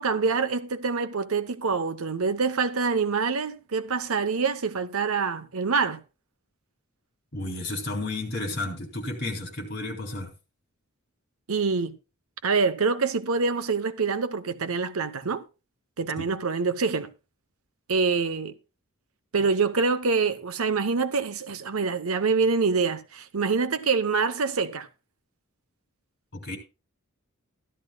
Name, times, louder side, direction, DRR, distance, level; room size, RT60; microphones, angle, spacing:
voice 1, 0.0-6.0 11.5-11.9 12.4-15.4 16.0-17.1 17.9-18.5 19.3-24.9, right 4 dB, 80° right, 0.8 m, -25 dB
voice 2, 7.3-10.3 16.2-16.3 26.3-26.6, left 2 dB, 45° left, 3.4 m, -32 dB
14.0 x 12.0 x 2.3 m
head